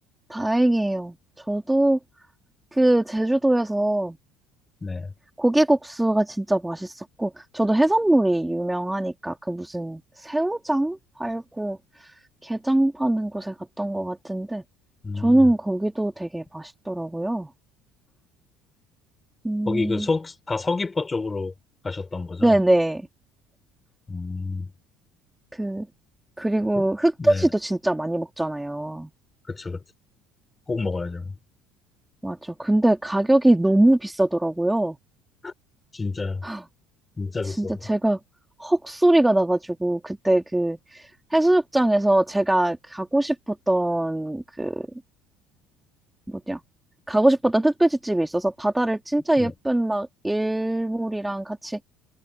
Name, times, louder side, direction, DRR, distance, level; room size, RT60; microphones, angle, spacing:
voice 1, 0.3-1.2 1.5-2.0 2.7-4.2 5.4-12.1 12.4-14.6 15.1-17.5 19.4-20.1 22.4-23.1 25.5-25.9 26.4-29.1 32.2-35.0 36.4-36.7 37.4-38.2 38.6-44.9 46.3-46.6 47.1-51.8, right 1 dB, 10° right, 2.7 m, -23 dB
voice 2, 4.8-5.1 15.0-15.5 19.7-21.5 21.8-22.6 24.1-24.7 26.8-26.9 27.2-27.5 29.5-29.8 30.7-31.3 35.4-35.5 35.9-36.4 37.2-37.7 49.4-49.5, left 3 dB, 20° left, 4.2 m, -28 dB
supercardioid pair, 85°, 0 cm